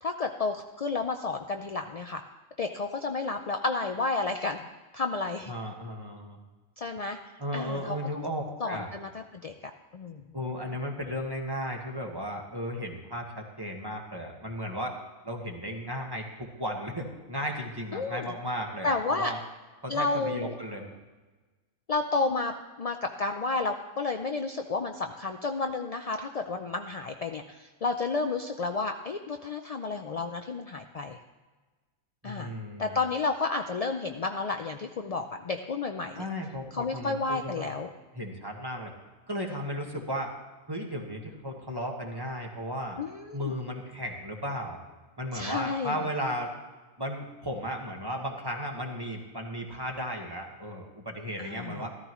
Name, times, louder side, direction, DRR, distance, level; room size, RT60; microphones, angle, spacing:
voice 1, 0.0-2.2 2.6-4.6 4.9-5.5 6.8-7.2 7.5-8.0 8.6-9.5 9.9-10.2 17.9-18.3 18.8-19.3 19.9-20.6 21.9-31.2 32.2-32.5 32.8-36.3 36.7-37.9 43.0-43.5 45.3-46.0 51.4-51.8, left 3 dB, 60° left, 5 dB, 0.4 m, -31 dB
voice 2, 5.5-6.4 7.4-8.9 10.3-14.9 15.2-19.4 19.8-20.9 32.2-33.0 36.1-37.7 38.1-38.9 39.3-40.3 40.7-43.0 43.3-44.8 45.2-46.5 47.0-51.9, equal, 20° right, 1 dB, 1.5 m, -35 dB
14.0 x 14.0 x 3.1 m, 1.3 s
omnidirectional pair, 1.4 m